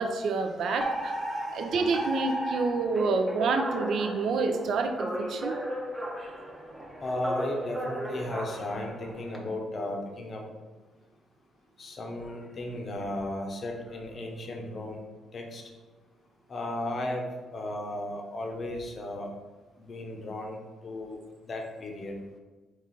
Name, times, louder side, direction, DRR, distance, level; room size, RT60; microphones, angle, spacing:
voice 1, 0.0-1.2 1.5-5.5, right 4 dB, 65° right, 6 dB, 0.4 m, -28 dB
Alarm, 0.8-9.4, right 1 dB, 15° right, 0.7 m, -35 dB
voice 2, 1.2-1.6 7.0-10.4 11.8-15.0 15.3-15.6 16.5-19.3 19.8-21.2 21.5-22.2, left 1 dB, 45° left, 2 dB, 0.7 m, -35 dB
4.1 x 2.4 x 3.8 m, 1.3 s
cardioid pair, 90°, 0 cm